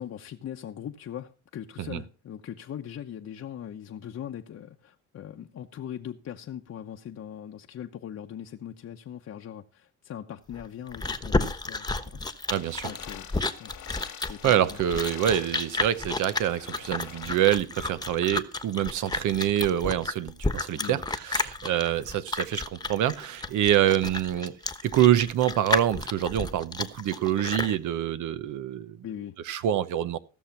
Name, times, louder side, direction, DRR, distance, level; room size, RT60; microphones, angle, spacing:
voice 1, 0.0-12.4 12.8-13.3 13.6-13.7 14.3-14.8 20.7-21.0 29.0-29.4, left 10 dB, 55° left, 0.9 m, -40 dB
Chewing mastication, 10.5-27.8, left 3 dB, 15° left, 1.1 m, -31 dB
sound 1, 12.5-17.5, left 11 dB, 85° left, 1.8 m, -46 dB
voice 2, 12.5-12.9 14.4-24.6 24.8-29.0 29.5-30.2, right 11 dB, 80° right, 1.0 m, -26 dB
16.0 x 6.5 x 5.8 m
cardioid pair, 90°, 30 cm